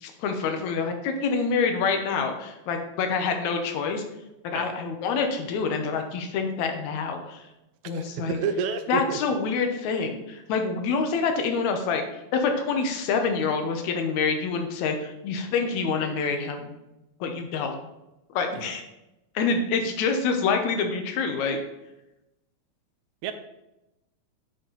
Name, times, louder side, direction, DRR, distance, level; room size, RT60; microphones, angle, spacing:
voice 1, 0.0-4.0 4.5-7.4 7.9-8.4 8.9-12.0 12.3-16.7 17.2-17.8 18.3-18.8 19.4-21.6, left 5 dB, 75° left, 5 dB, 2.2 m, -26 dB
voice 2, 7.9-9.2 18.6-18.8 23.2-23.3, right 6 dB, 80° right, 8 dB, 2.1 m, -30 dB
9.2 x 4.2 x 3.9 m, 0.94 s
omnidirectional pair, 3.4 m